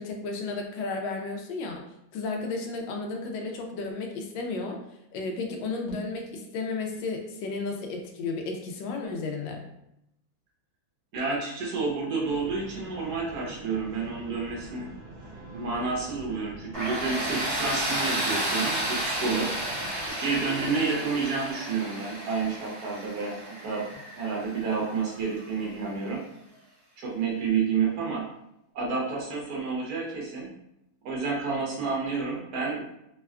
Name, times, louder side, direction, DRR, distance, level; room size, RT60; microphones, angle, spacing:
voice 1, 0.0-1.8 2.1-4.8 5.1-9.6, left 3 dB, 75° left, 3 dB, 1.2 m, -33 dB
voice 2, 11.1-14.9 15.5-19.5 20.0-23.9 24.2-26.2 27.0-28.2 28.7-30.5 31.0-32.8, right 4 dB, 60° right, -3 dB, 1.2 m, -30 dB
sound 1, 12.2-20.1, right 2 dB, 85° right, 1.4 m, -45 dB
Tools, 16.7-25.5, right 1 dB, 20° right, 1.1 m, -32 dB
3.5 x 2.2 x 2.3 m, 0.82 s
omnidirectional pair, 2.1 m